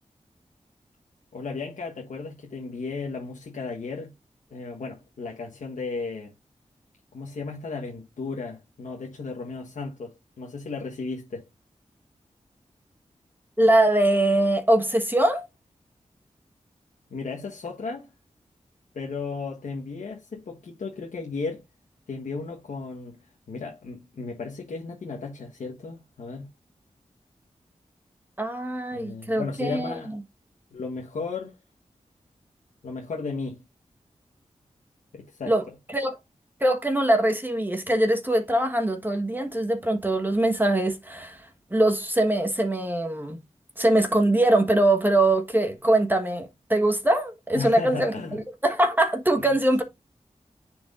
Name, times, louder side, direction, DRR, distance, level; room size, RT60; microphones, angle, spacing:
voice 1, 1.3-4.1 4.5-6.3 7.1-11.4 17.1-18.1 18.9-21.6 22.1-23.2 23.5-26.5 28.9-30.1 30.7-31.5 32.8-33.6 35.1-35.6 47.5-48.4 49.5-49.6, left 4 dB, 90° left, 1.2 m, -34 dB
voice 2, 13.6-15.5 28.4-30.0 35.4-35.6 35.9-36.2 36.6-43.4 43.8-48.1 48.6-49.8, right 1 dB, 15° right, 1.3 m, -22 dB
9.4 x 4.6 x 2.5 m
cardioid pair, 55°, 13 cm